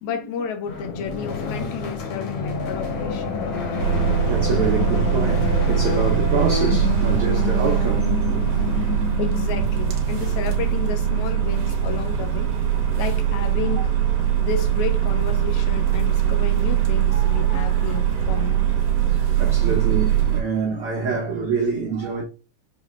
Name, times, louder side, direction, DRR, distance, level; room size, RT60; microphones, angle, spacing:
voice 1, 0.0-3.4 9.2-12.5 13.0-13.9 14.4-18.6, left 7 dB, 80° left, 1.9 m, -31 dB
sound 1, 0.7-9.9, left 5 dB, 60° left, 1.9 m, -28 dB
voice 2, 0.7-1.2 1.6-1.7 4.1-8.1 8.5-8.6 10.2-10.4 17.1-18.0 19.1-22.2, right 5 dB, 85° right, 1.2 m, -27 dB
sound 2, 3.8-20.4, right 9 dB, 65° right, 1.5 m, -21 dB
5.6 x 3.1 x 2.2 m
omnidirectional pair, 3.6 m